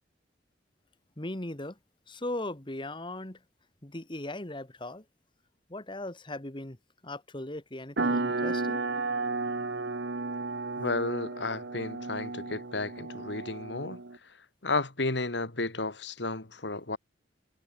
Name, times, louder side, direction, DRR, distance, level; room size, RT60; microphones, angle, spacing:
voice 1, 1.2-1.8 2.1-3.4 3.8-5.0 5.7-6.8 7.0-8.8, left 1 dB, 25° left, 2.0 m, -38 dB
sound 1, 8.0-14.2, right 3 dB, 70° right, 1.3 m, -33 dB
voice 2, 10.8-14.0 14.6-17.0, left 3 dB, 80° left, 2.5 m, -32 dB
head